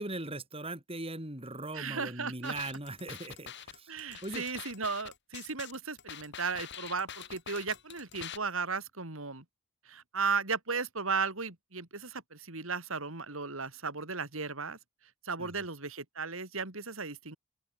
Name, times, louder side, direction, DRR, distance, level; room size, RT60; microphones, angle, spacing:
voice 1, 0.0-3.9 4.2-4.4 15.4-15.5, right 2 dB, 25° right, 6.8 m, -39 dB
voice 2, 1.7-2.5 3.9-9.4 9.9-14.8 15.2-17.4, right 4 dB, 75° right, 3.6 m, -35 dB
sound 1, 2.4-8.4, left 9 dB, 55° left, 3.1 m, -45 dB
open air
head